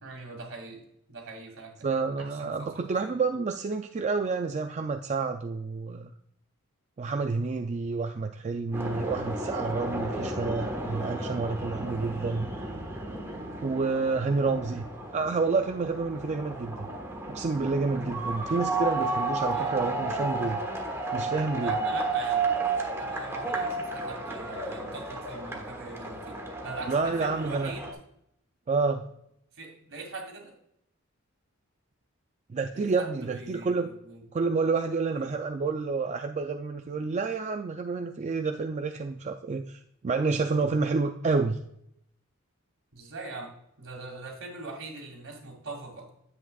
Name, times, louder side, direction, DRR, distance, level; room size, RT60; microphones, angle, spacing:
voice 1, 0.0-1.9 2.2-3.1 19.5-19.7 21.6-22.5 23.0-26.4 26.6-27.9 29.5-30.5 32.7-34.2 35.1-35.3 42.9-46.1, right 3 dB, 65° right, 1 dB, 2.3 m, -41 dB
voice 2, 1.8-6.1 7.0-12.5 13.6-14.8 15.1-16.9 17.3-20.6 21.1-21.8 26.9-27.7 28.7-29.0 32.5-33.9 34.3-41.6, right 4 dB, 35° right, 5 dB, 0.4 m, -29 dB
sound 1, 8.7-27.9, right 2 dB, 10° right, 1.3 m, -33 dB
9.6 x 8.1 x 2.3 m, 0.75 s
head